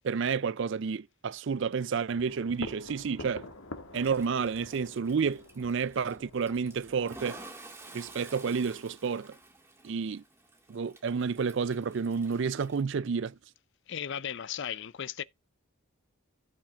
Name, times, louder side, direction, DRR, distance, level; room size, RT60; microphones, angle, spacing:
voice 1, 0.0-3.5 3.9-7.4 7.9-9.4 9.8-10.2 10.7-13.4, right 5 dB, 55° right, 0.4 m, -30 dB
sound 1, 2.1-7.1, left 2 dB, 75° left, 1.8 m, -46 dB
Toilet flush, 4.0-12.8, right 2 dB, 10° right, 1.8 m, -51 dB
voice 2, 13.9-15.2, left 8 dB, 55° left, 0.5 m, -36 dB
16.5 x 5.8 x 2.4 m
head